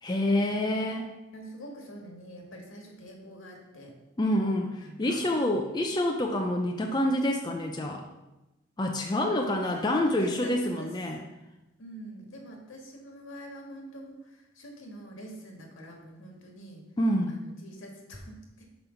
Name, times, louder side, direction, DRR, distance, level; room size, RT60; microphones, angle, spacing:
voice 1, 0.0-1.1 4.2-8.0 8.8-11.2 17.0-17.4, left 1 dB, 20° left, 2 dB, 0.5 m, -27 dB
voice 2, 1.3-3.9 4.8-5.2 9.1-10.9 11.8-16.8 17.3-18.7, equal, 75° left, 1 dB, 1.7 m, -45 dB
6.1 x 5.2 x 5.8 m, 1.0 s
head